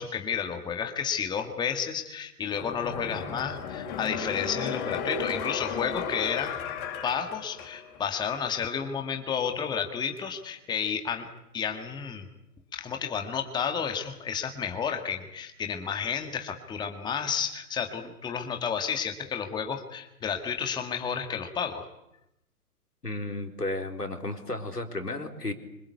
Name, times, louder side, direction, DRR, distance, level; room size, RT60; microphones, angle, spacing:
voice 1, 0.0-6.5 7.0-11.3 11.5-12.3 12.7-21.9, left 7 dB, 10° left, 5 dB, 1.8 m, -31 dB
sound 1, 2.5-8.1 8.4-8.5, left 6 dB, 30° left, 5.1 m, -34 dB
voice 2, 23.0-25.5, left 2 dB, 90° left, 4 dB, 4.2 m, -33 dB
26.0 x 25.5 x 8.4 m, 0.84 s
figure-of-eight pair, 130°, 46 cm